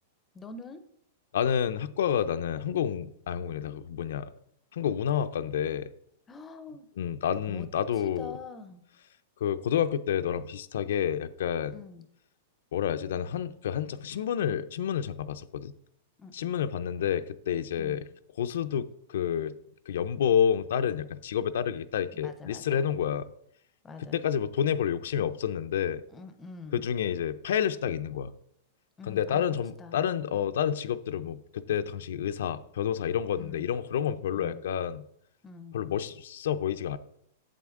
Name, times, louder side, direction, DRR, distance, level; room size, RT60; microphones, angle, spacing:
voice 1, 0.3-0.8 6.3-6.9 7.5-7.7 8.0-8.8 11.7-12.1 16.2-16.7 22.1-23.1 23.8-24.2 26.1-26.8 29.0-30.1 33.3-33.7 34.3-34.6 35.4-35.8, left 4 dB, 10° left, 0.5 m, -45 dB
voice 2, 1.3-4.3 4.7-5.9 7.0-8.3 9.4-11.8 12.7-15.7 16.3-18.0 18.4-19.6 19.9-23.3 24.1-26.0 26.7-28.3 29.1-35.1 35.7-37.0, left 9 dB, 75° left, 0.4 m, -29 dB
7.8 x 7.7 x 3.6 m
supercardioid pair, 175°, 0 cm